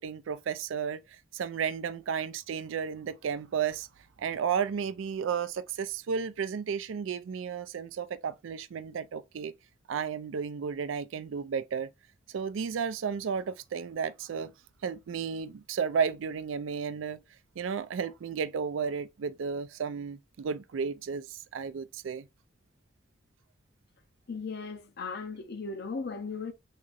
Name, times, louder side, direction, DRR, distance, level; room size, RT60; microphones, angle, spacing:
voice 1, 0.0-3.9 4.2-9.5 9.9-11.9 12.3-14.5 14.8-17.2 17.6-22.3, right 6 dB, 85° right, 0.4 m, -33 dB
voice 2, 24.3-26.5, left 4 dB, 55° left, 0.6 m, -37 dB
3.8 x 2.9 x 2.4 m
head